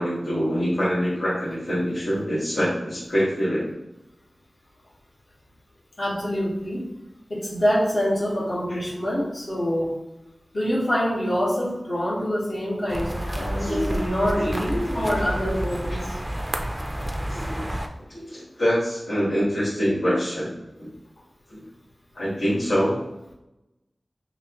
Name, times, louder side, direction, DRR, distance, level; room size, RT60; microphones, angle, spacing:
voice 1, 0.0-3.7 8.7-8.8 13.3-14.0 14.3-14.6 14.9-15.6 15.9-16.0 17.3-17.6 18.1-20.9 21.5-21.6 22.1-23.0, equal, 75° left, -9 dB, 1.4 m, -26 dB
voice 2, 6.0-6.9 7.3-9.9 10.5-16.1, equal, 55° left, -6 dB, 1.3 m, -25 dB
sound 1, 12.9-17.9, right 1 dB, 10° right, 0.4 m, -30 dB
5.8 x 2.0 x 2.9 m, 0.94 s
wide cardioid pair, 85°, 0 cm